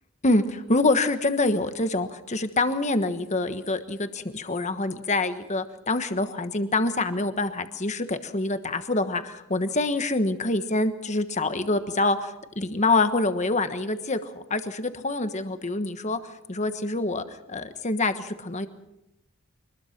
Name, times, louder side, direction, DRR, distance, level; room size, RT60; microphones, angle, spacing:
voice 1, 0.2-16.2 16.5-18.7, left 2 dB, 30° left, 9 dB, 1.3 m, -26 dB
25.0 x 20.5 x 6.0 m, 0.89 s
head